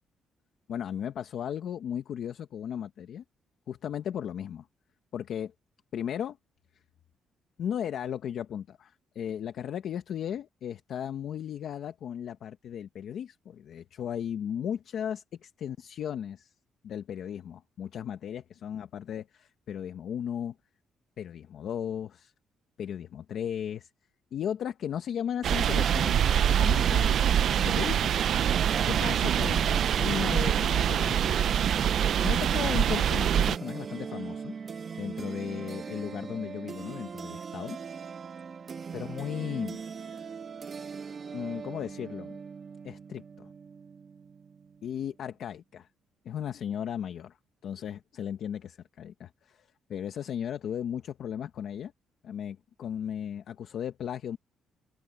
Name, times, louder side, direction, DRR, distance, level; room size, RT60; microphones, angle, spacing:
voice 1, 0.7-3.2 3.7-4.7 5.1-5.5 5.9-6.4 7.6-16.5 16.8-20.5 21.2-22.3 22.8-23.9 24.3-28.2 28.8-31.7 32.2-34.5 35.0-37.8 38.9-39.8 41.3-42.4 42.8-43.5 44.8-45.9 46.2-47.4 47.6-51.9 52.2-54.4, left 9 dB, 50° left, 0.9 m, -36 dB
sound 1, 25.4-33.6, right 9 dB, 50° right, 0.4 m, -25 dB
sound 2, 28.5-45.1, right 6 dB, 30° right, 1.9 m, -40 dB
open air
cardioid pair, 180°, 0 cm